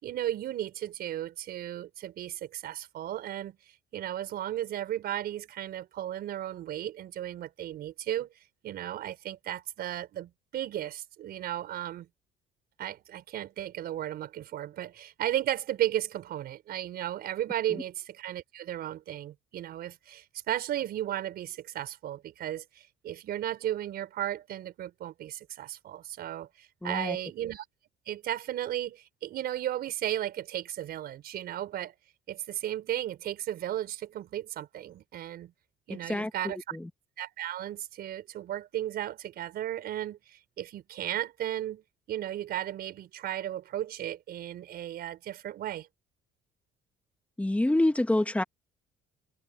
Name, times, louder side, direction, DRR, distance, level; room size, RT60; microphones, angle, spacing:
voice 1, 0.0-3.6 3.9-8.3 8.6-12.1 12.8-27.7 28.1-32.0 32.3-35.5 35.9-36.8 37.2-45.9, right 12 dB, 65° right, 5.5 m, -35 dB
voice 2, 26.8-27.2 35.9-36.9 47.4-48.4, left 1 dB, 10° left, 1.7 m, -27 dB
cardioid pair, 110°, 17 cm